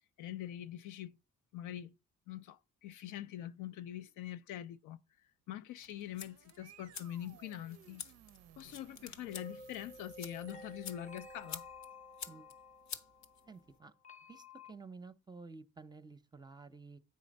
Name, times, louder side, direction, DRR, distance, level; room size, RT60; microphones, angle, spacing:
voice 1, 0.2-1.2 1.5-1.9 2.3-5.0 5.5-8.0 8.6-11.6, left 12 dB, 85° left, 0.5 m, -44 dB
sound 1, 5.7-12.0, right 11 dB, 55° right, 0.4 m, -61 dB
sound 2, 5.8-13.8, left 6 dB, 65° left, 0.8 m, -50 dB
sound 3, 9.3-14.7, left 2 dB, 25° left, 0.7 m, -53 dB
voice 2, 13.5-13.9 14.3-17.0, right 4 dB, 15° right, 0.6 m, -52 dB
8.5 x 3.2 x 5.2 m
cardioid pair, 90°, 30 cm